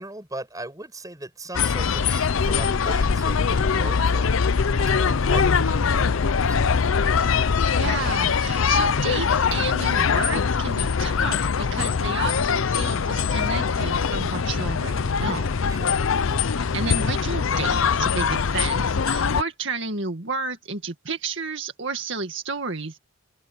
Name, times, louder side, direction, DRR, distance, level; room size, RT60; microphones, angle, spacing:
voice 1, 0.0-6.9 15.7-15.9, right 2 dB, 15° right, 6.3 m, -38 dB
sound 1, 1.5-19.4, left 6 dB, 75° left, 0.6 m, -22 dB
voice 2, 7.8-15.5 16.6-23.0, right 4 dB, 60° right, 2.1 m, -32 dB
head